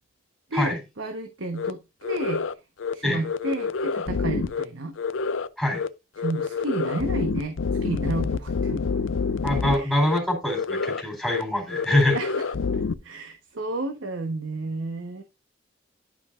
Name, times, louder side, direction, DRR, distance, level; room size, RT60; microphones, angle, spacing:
voice 1, 0.5-2.4 2.9-4.9 6.2-8.8 9.6-9.9 12.1-15.2, right 2 dB, 80° right, 5 dB, 1.1 m, -32 dB
sound 1, 1.6-1.7 2.0-2.5 2.8-2.9 3.2-4.6 5.0-5.5 5.7-5.9 6.2-9.8 10.0-10.2 10.5-11.0 11.3-11.4 11.7-12.9, left 5 dB, 80° left, 0.5 m, -27 dB
voice 2, 9.4-12.2, left 1 dB, ahead, 0 dB, 3.8 m, -24 dB
11.5 x 5.2 x 2.5 m, 0.25 s
head